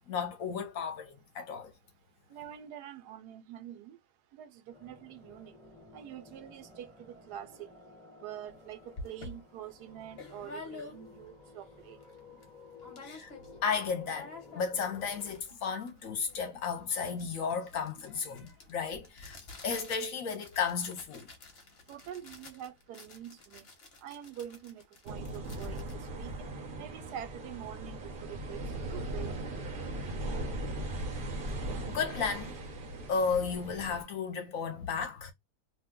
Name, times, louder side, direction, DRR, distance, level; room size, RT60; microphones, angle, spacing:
voice 1, 0.1-1.7 13.0-13.3 13.6-19.4 19.6-21.3 31.8-32.5 33.1-35.3, left 5 dB, 65° left, 1.0 m, -34 dB
voice 2, 2.3-4.0 4.4-5.5 5.9-7.7 8.2-12.0 21.9-23.7 24.0-25.9 26.2-26.5 26.8-28.6 28.9-29.3, right 10 dB, 85° right, 1.2 m, -45 dB
sound 1, 4.7-15.4, left 3 dB, 5° left, 0.6 m, -54 dB
sound 2, 8.5-8.6 9.0-11.3 11.8-11.9 12.0-12.5 12.8-13.6 13.9-27.0, left 2 dB, 45° left, 1.0 m, -49 dB
sound 3, 25.1-34.0, right 1 dB, 50° right, 0.6 m, -38 dB
2.9 x 2.2 x 3.6 m
omnidirectional pair, 1.7 m